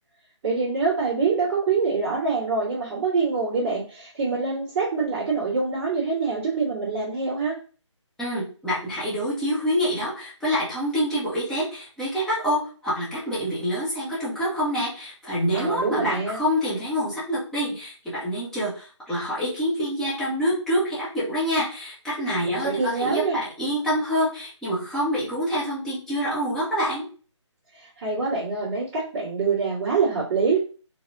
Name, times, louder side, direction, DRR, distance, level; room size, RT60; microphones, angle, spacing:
voice 1, 0.4-7.6 15.5-16.4 22.5-23.4 27.7-30.6, right 4 dB, 20° right, -13 dB, 2.2 m, -25 dB
voice 2, 8.2-27.0, equal, 5° left, -9 dB, 1.4 m, -26 dB
4.7 x 2.8 x 3.7 m, 0.37 s
figure-of-eight pair, 150°, 16 cm